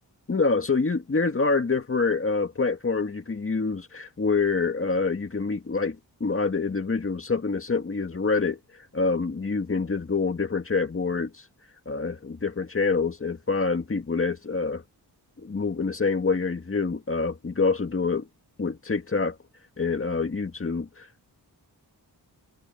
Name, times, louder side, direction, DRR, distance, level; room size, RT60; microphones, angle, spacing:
voice 1, 0.3-8.6 8.9-11.4 11.9-14.8 15.4-18.3 18.6-19.4 19.8-21.1, left 4 dB, 35° left, 1.9 m, -26 dB
wide cardioid pair, 160°, 39 cm